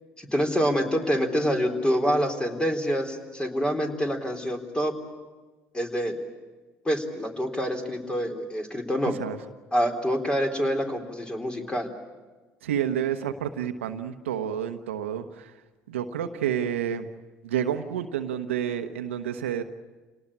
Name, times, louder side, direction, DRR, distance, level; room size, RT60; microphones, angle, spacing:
voice 1, 0.2-4.9 5.7-6.2 6.8-9.1 9.7-11.9, equal, 15° left, 4 dB, 4.0 m, -26 dB
voice 2, 12.6-15.5 15.9-17.1 17.4-19.6, right 9 dB, 90° right, 7 dB, 1.1 m, -29 dB
27.5 x 18.5 x 8.7 m, 1.3 s
hypercardioid pair, 65°, 7 cm